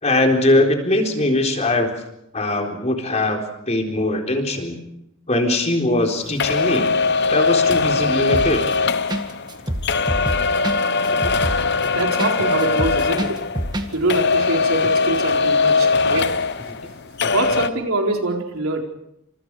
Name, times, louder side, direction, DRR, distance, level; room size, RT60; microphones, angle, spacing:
voice 1, 0.0-1.9 2.3-3.4 3.7-4.8 5.3-6.9 7.3-8.6 11.2-11.3, left 1 dB, 30° left, 3 dB, 4.2 m, -20 dB
sound 1, 6.4-13.8 14.1-16.9 17.2-17.7, left 4 dB, 55° left, 1.0 m, -20 dB
sound 2, 8.3-8.8 9.1-9.2 9.5-12.3 12.6-13.9 14.1-14.2, equal, 20° right, 1.9 m, -25 dB
voice 2, 11.9-13.4 13.9-16.4 17.3-18.8, right 2 dB, 85° right, 2 dB, 4.3 m, -24 dB
29.5 x 26.5 x 4.9 m, 0.81 s
head